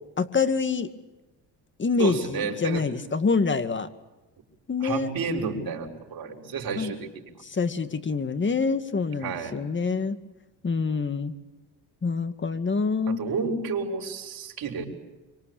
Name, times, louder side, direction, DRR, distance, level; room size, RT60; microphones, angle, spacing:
voice 1, 0.2-0.9 1.8-3.9 4.7-5.1 6.8-6.9 7.4-10.2 10.6-11.3 12.0-13.2, left 4 dB, 25° left, 11 dB, 2.1 m, -26 dB
voice 2, 2.0-2.8 4.8-7.2 9.2-9.5 13.1-14.8, right 4 dB, 55° right, 2 dB, 6.1 m, -31 dB
26.0 x 25.0 x 8.6 m, 1.1 s
cardioid pair, 105°, 43 cm